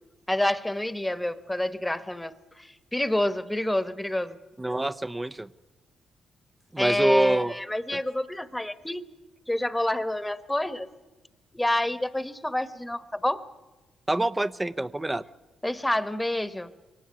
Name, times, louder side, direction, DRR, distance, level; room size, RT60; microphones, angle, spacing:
voice 1, 0.3-4.4 6.8-9.0 9.5-10.9 11.5-13.4 15.6-16.7, left 1 dB, 10° left, 13 dB, 1.2 m, -28 dB
voice 2, 4.6-5.5 6.7-7.5 14.1-15.2, right 1 dB, 15° right, 15 dB, 0.7 m, -25 dB
23.0 x 18.0 x 9.8 m, 1.1 s
supercardioid pair, 60°, 0 cm